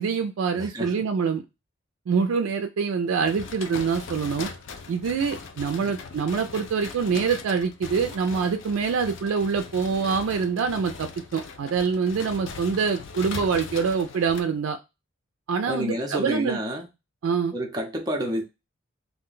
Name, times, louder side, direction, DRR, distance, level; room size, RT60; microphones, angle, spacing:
voice 1, 0.0-1.4 2.1-4.5 4.9-14.8 15.5-16.6 17.2-17.5, right 5 dB, 80° right, 0.3 m, -25 dB
voice 2, 0.5-1.1 5.8-5.9 15.7-16.9 17.5-18.4, equal, 20° right, 0.5 m, -29 dB
sound 1, 3.2-14.4, left 4 dB, 65° left, 0.4 m, -40 dB
2.4 x 2.1 x 3.7 m
head